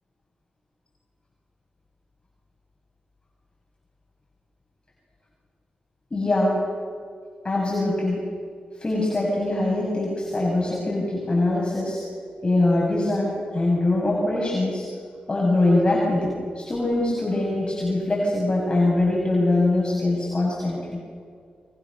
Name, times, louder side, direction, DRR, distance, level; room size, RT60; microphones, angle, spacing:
voice 1, 6.1-6.6 7.4-8.2 8.8-12.0 12.4-14.9 15.3-21.0, left 2 dB, 35° left, -4 dB, 7.0 m, -23 dB
25.5 x 24.5 x 6.7 m, 2.1 s
cardioid pair, 55°, 3 cm